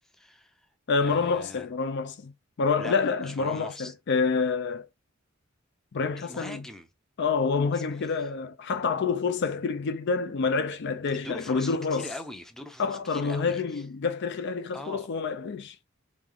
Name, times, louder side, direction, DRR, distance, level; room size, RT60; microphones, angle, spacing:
voice 1, 0.1-0.7 1.0-1.7 2.8-3.9 6.2-6.9 7.7-8.1 11.1-13.8 14.7-15.1, left 1 dB, ahead, 0.5 m, -42 dB
voice 2, 0.9-2.3 2.6-4.9 5.9-6.7 7.2-12.1 12.8-15.8, left 4 dB, 60° left, 0.5 m, -27 dB
3.1 x 2.9 x 3.8 m
head